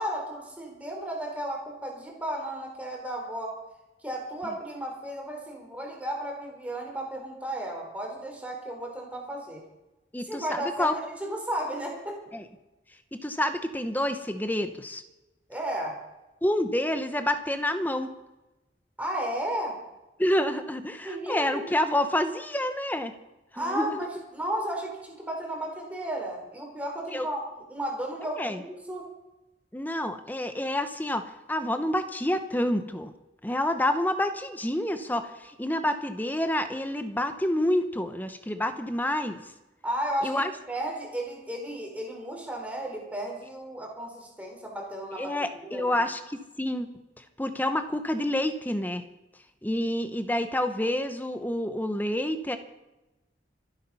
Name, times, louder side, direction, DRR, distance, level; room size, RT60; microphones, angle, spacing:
voice 1, 0.0-3.5 4.0-9.6 10.2-12.2 15.5-16.0 19.0-19.7 21.0-21.7 23.5-27.4 27.7-29.1 39.8-45.3 45.6-46.0, right 1 dB, 10° right, 0 dB, 4.0 m, -34 dB
voice 2, 10.1-11.0 12.3-12.4 13.2-15.0 16.4-18.1 20.2-23.1 23.5-24.0 27.1-27.3 28.4-28.6 29.7-33.1 33.4-39.4 40.2-40.5 45.2-46.9 47.4-49.0 49.6-52.6, left 1 dB, 10° left, 9 dB, 1.0 m, -28 dB
25.5 x 8.7 x 5.6 m, 1.0 s
head